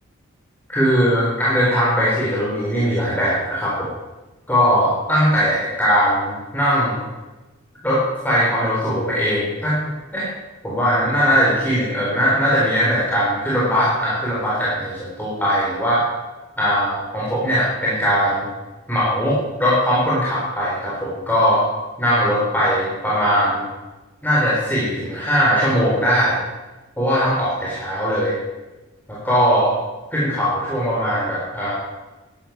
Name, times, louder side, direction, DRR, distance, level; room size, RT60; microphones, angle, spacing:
voice 1, 0.7-3.9 4.5-7.0 7.8-10.3 10.6-16.0 16.6-18.5 18.9-21.6 22.0-23.6 24.2-26.4 27.0-28.4 29.1-29.7 30.1-31.7, equal, 10° left, -7 dB, 3.8 m, -20 dB
12.0 x 11.5 x 9.4 m, 1.1 s
head